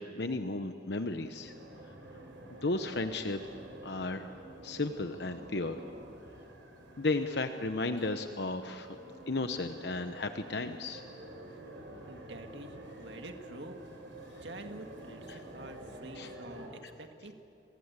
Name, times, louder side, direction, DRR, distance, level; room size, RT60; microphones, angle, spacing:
voice 1, 0.0-1.5 2.5-3.4 3.8-4.4 4.6-5.8 7.0-9.0 9.3-11.0 15.3-15.4 16.1-16.3 16.8-16.9, left 2 dB, 60° left, 7 dB, 1.0 m, -34 dB
sound 1, 0.9-16.7, right 1 dB, 85° right, 6.2 m, -49 dB
voice 2, 12.1-13.8 14.4-17.3, right 2 dB, 65° right, 5 dB, 2.0 m, -47 dB
29.0 x 23.0 x 8.3 m, 2.5 s
head